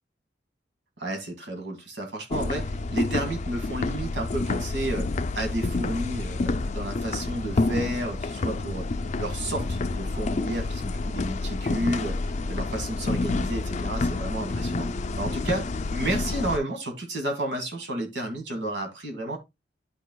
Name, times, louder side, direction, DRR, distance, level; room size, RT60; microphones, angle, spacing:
voice 1, 1.0-5.1 5.4-8.9 9.2-14.9 15.2-19.4, right 1 dB, 80° right, 2.1 m, -31 dB
sound 1, 2.3-16.6, left 3 dB, 40° left, 0.4 m, -29 dB
11.5 x 4.9 x 2.3 m
head